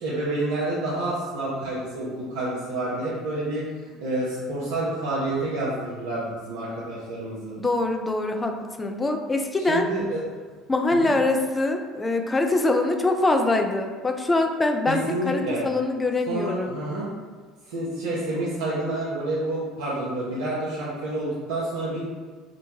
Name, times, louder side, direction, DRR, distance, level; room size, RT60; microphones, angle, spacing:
voice 1, 0.0-3.6 4.0-7.5 9.7-10.2 10.9-11.1 14.9-15.6 16.3-17.1 17.7-22.0, right 2 dB, 70° right, -8 dB, 0.5 m, -28 dB
voice 2, 7.6-9.9 10.7-15.0 15.3-16.7, left 2 dB, 15° left, 4 dB, 0.3 m, -24 dB
2.8 x 2.1 x 2.8 m, 1.5 s
figure-of-eight pair, 60°, 0 cm